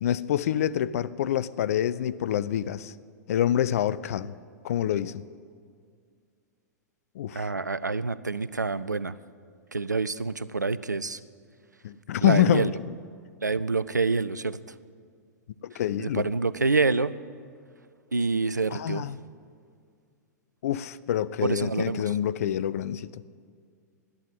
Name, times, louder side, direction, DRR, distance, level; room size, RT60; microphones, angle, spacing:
voice 1, 0.0-2.9 3.3-4.4 4.6-5.2 7.2-7.5 11.8-12.7 15.6-16.3 18.7-19.2 20.6-23.2, left 11 dB, 55° left, 0.5 m, -26 dB
voice 2, 7.3-9.1 9.7-11.2 12.2-12.7 13.4-14.8 16.0-17.2 18.1-19.0 21.4-22.1, right 3 dB, 90° right, 0.4 m, -27 dB
11.5 x 9.3 x 9.1 m
figure-of-eight pair, 100°, 9 cm